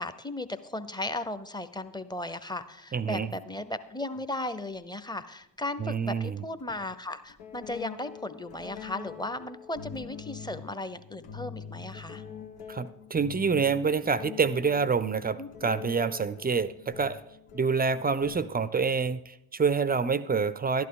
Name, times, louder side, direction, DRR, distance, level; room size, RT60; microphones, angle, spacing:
voice 1, 0.0-12.2 15.4-15.7, left 2 dB, 10° left, 12 dB, 0.8 m, -36 dB
voice 2, 2.9-3.3 5.8-6.4 12.7-17.2 17.5-20.9, right 5 dB, 20° right, 16 dB, 0.5 m, -27 dB
sound 1, 4.7-4.8 6.6-6.7 7.3-18.9, left 7 dB, 75° left, 1.0 m, -45 dB
12.0 x 11.0 x 3.9 m, 0.82 s
hypercardioid pair, 45°, 49 cm